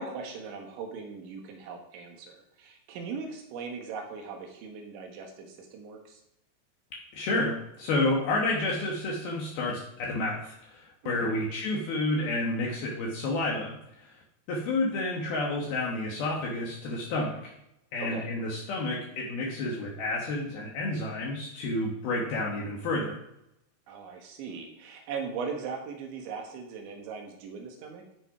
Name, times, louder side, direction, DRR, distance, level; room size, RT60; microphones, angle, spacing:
voice 1, 0.0-6.2 11.0-11.4 18.0-18.3 23.9-28.0, right 5 dB, 85° right, 3 dB, 3.9 m, -39 dB
voice 2, 6.9-14.2 14.5-17.5 17.9-23.2, left 2 dB, 65° left, -2 dB, 2.9 m, -30 dB
12.5 x 5.7 x 4.9 m, 0.83 s
omnidirectional pair, 5.2 m